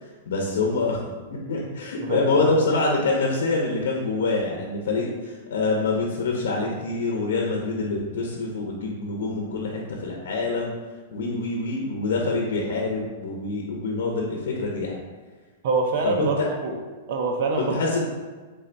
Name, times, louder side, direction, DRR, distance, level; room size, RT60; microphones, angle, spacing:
voice 1, 0.3-1.0 1.5-10.7 11.1-15.0 16.0-16.3 17.6-18.0, left 3 dB, 85° left, 0 dB, 0.8 m, -25 dB
voice 2, 2.0-2.5 15.6-16.8 17.1-18.0, right 3 dB, 45° right, 2 dB, 0.5 m, -25 dB
3.9 x 3.3 x 3.9 m, 1.4 s
supercardioid pair, 180°, 0 cm